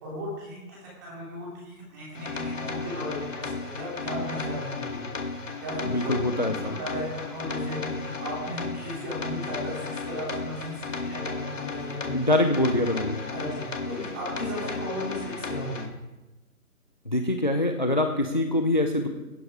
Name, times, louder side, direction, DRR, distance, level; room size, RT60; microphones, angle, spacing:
voice 1, 0.0-5.1 5.6-12.2 12.5-12.6 13.3-15.9, equal, 10° right, -5 dB, 3.0 m, -36 dB
sound 1, 2.1-15.9, left 4 dB, 55° left, 2.1 m, -34 dB
voice 2, 5.9-6.8 12.1-13.2 17.1-19.1, left 1 dB, 30° left, 6 dB, 0.6 m, -24 dB
17.5 x 7.7 x 4.7 m, 1.1 s
hypercardioid pair, 175°, 45 cm